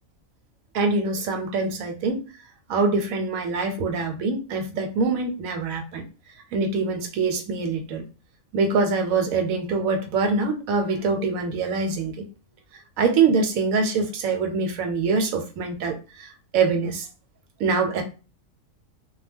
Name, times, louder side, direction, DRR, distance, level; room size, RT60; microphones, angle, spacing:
voice 1, 0.7-2.2 2.7-6.0 6.5-8.0 8.5-12.2 13.0-17.1 17.6-18.0, right 4 dB, 85° right, 5 dB, 1.0 m, -24 dB
2.2 x 2.2 x 3.4 m, 0.33 s
omnidirectional pair, 1.4 m